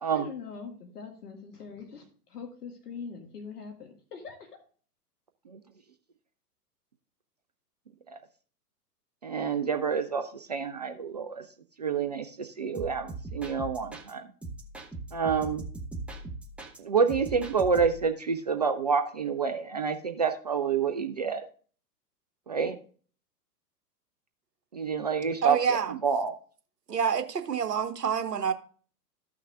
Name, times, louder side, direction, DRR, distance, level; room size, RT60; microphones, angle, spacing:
voice 1, 0.1-4.6, left 5 dB, 65° left, 2.0 m, -43 dB
voice 2, 9.2-11.4 11.8-14.2 15.1-15.6 16.8-21.4 22.5-22.8 24.7-26.3, right 6 dB, 30° right, 0.3 m, -28 dB
sound 1, 12.7-14.1 14.4-16.8 17.1-18.1, right 2 dB, 5° right, 0.7 m, -40 dB
voice 3, 25.2-25.9 26.9-28.5, right 7 dB, 75° right, 1.2 m, -28 dB
14.5 x 5.9 x 2.4 m
figure-of-eight pair, 110°, 49 cm